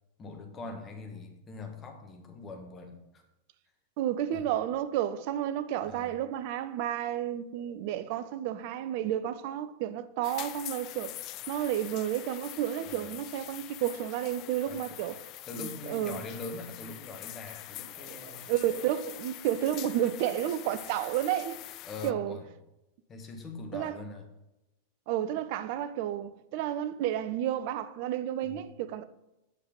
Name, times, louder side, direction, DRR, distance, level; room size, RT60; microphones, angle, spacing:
voice 1, 0.2-3.2 4.3-4.4 5.8-6.2 12.8-13.2 14.6-15.0 15.5-18.5 21.8-22.5 23.1-24.2 28.4-28.6, left 3 dB, 25° left, 1.7 m, -43 dB
voice 2, 4.0-11.1 11.5-15.2 15.5-16.2 18.0-21.6 22.0-22.4 23.7-23.9 25.1-29.0, right 11 dB, 45° right, 0.6 m, -31 dB
sound 1, 10.2-22.1, left 16 dB, 40° left, 0.3 m, -44 dB
8.4 x 6.4 x 3.8 m
figure-of-eight pair, 90°, 0 cm